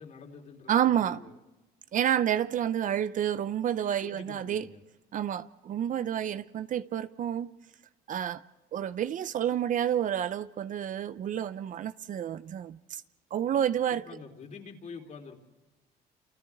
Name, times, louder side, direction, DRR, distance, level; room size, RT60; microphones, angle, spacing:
voice 1, 0.0-1.4 4.0-4.8 13.9-15.4, left 5 dB, 45° left, 3.6 m, -46 dB
voice 2, 0.7-1.2 1.9-4.7 5.1-7.5 8.1-8.4 8.7-13.0 13.3-14.1, right 10 dB, 50° right, 0.7 m, -29 dB
29.0 x 28.5 x 3.6 m
cardioid pair, 110°, 17 cm